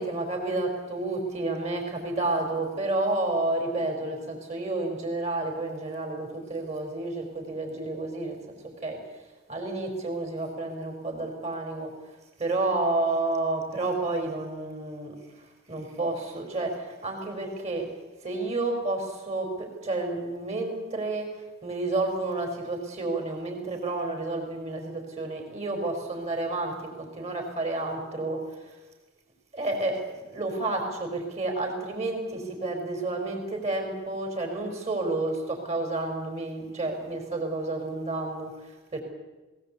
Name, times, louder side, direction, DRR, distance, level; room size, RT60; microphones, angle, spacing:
voice 1, 0.0-8.4 8.8-9.0 9.5-11.9 12.4-17.9 18.2-21.3 21.6-28.8 29.5-30.0 30.3-39.0, right 2 dB, 30° right, 3 dB, 4.8 m, -30 dB
19.5 x 19.0 x 8.5 m, 1.1 s
head